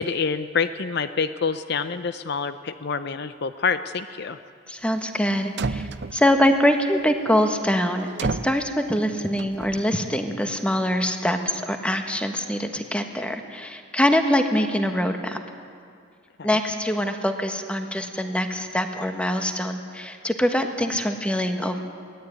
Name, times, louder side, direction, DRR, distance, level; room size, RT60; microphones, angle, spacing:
voice 1, 0.0-4.4 16.4-16.5, left 5 dB, 55° left, 11 dB, 0.6 m, -27 dB
voice 2, 4.7-8.1 8.4-15.4 16.4-21.8, equal, 5° left, 5 dB, 1.5 m, -24 dB
sound 1, 5.2-5.3 5.6-6.4 8.2-8.6 9.4-9.8, right 3 dB, 55° right, 0.6 m, -29 dB
22.5 x 17.5 x 9.4 m, 2.3 s
head